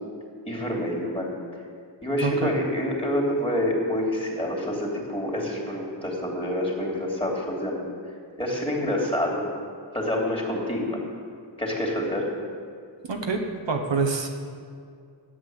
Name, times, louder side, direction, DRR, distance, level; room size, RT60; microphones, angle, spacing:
voice 1, 0.5-1.3 2.0-7.9 8.4-9.4 9.9-11.0 11.6-12.2, left 1 dB, 10° left, -2 dB, 3.1 m, -27 dB
voice 2, 2.2-2.6 13.0-14.3, right 4 dB, 75° right, 3 dB, 1.3 m, -26 dB
11.0 x 8.5 x 7.9 m, 2.2 s
wide cardioid pair, 65°, 45 cm